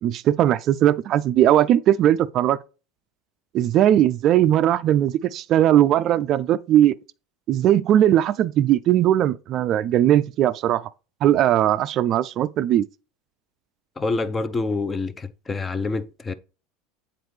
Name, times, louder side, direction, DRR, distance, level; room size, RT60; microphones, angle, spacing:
voice 1, 0.0-2.6 3.5-7.0 7.5-10.9 11.2-12.9, right 11 dB, 50° right, 0.3 m, -19 dB
voice 2, 14.0-16.3, left 3 dB, 20° left, 0.5 m, -27 dB
7.9 x 4.1 x 3.2 m
hypercardioid pair, 85°, 0 cm